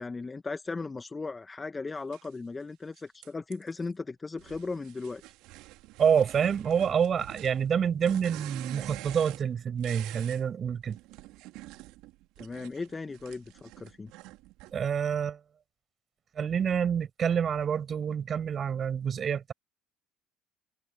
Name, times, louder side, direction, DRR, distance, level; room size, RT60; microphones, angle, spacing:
voice 1, 0.0-5.2 12.4-14.1, left 3 dB, 20° left, 2.0 m, -37 dB
sound 1, 2.1-2.3 3.0-3.8 4.4-10.4 10.8-14.7, right 20 dB, 65° right, 3.0 m, -47 dB
voice 2, 6.0-11.0 14.7-15.4 16.3-19.5, right 7 dB, 40° right, 6.3 m, -27 dB
open air
hypercardioid pair, 65°, 0 cm